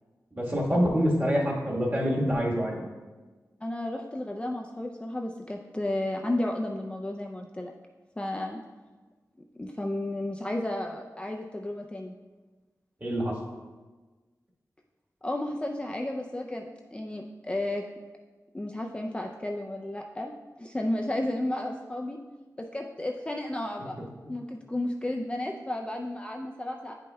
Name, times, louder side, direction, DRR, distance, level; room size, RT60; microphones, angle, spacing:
voice 1, 0.4-2.8 13.0-13.3, equal, 25° right, -3 dB, 1.4 m, -26 dB
voice 2, 3.6-7.7 8.2-8.6 9.5-12.1 15.2-17.8 18.5-20.3 20.6-22.2 22.6-26.9, left 1 dB, 15° left, 1 dB, 0.4 m, -33 dB
9.4 x 5.3 x 2.2 m, 1.3 s
wide cardioid pair, 100°, 7 cm